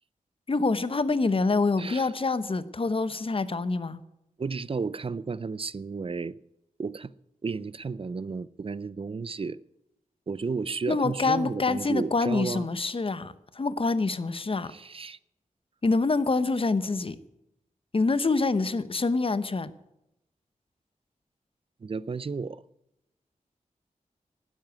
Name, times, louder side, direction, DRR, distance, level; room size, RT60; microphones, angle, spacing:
voice 1, 0.5-4.0 10.9-14.7 15.8-17.2 17.9-19.7, left 3 dB, 40° left, 0.9 m, -26 dB
voice 2, 1.8-2.1 4.4-6.4 6.8-7.1 7.4-9.6 10.3-12.7 14.7-15.2 21.8-22.6, right 4 dB, 40° right, 0.5 m, -33 dB
12.0 x 10.0 x 9.4 m
wide cardioid pair, 85°, 14 cm